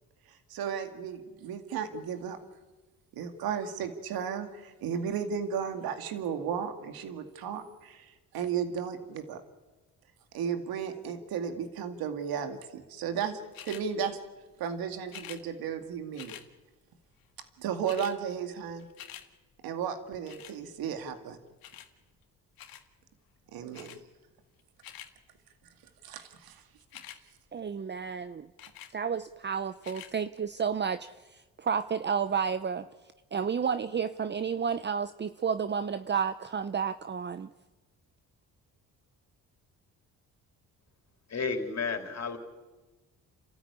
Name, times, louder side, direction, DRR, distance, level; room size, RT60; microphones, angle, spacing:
voice 1, 0.3-2.4 3.1-9.4 10.3-14.2 14.6-16.4 17.6-18.9 19.6-21.4 23.5-24.0 26.0-26.6, right 7 dB, 85° right, 7 dB, 2.3 m, -34 dB
sound 1, 13.5-13.9 15.1-15.4 16.1-16.5 17.4-17.5 17.7-18.2 18.5-19.3 20.3-20.6 21.6-21.9 22.6-22.9 23.7-24.0 24.6-25.1 26.8-27.2 28.6-28.9 29.8-30.1 30.8-30.9, left 10 dB, 80° left, 1.9 m, -46 dB
voice 2, 27.5-28.5 28.9-32.9 33.3-37.5, right 6 dB, 30° right, 12 dB, 0.8 m, -31 dB
voice 3, 41.3-42.4, left 4 dB, 45° left, 5 dB, 3.9 m, -32 dB
30.0 x 13.5 x 9.7 m, 1.2 s
cardioid pair, 75°, 35 cm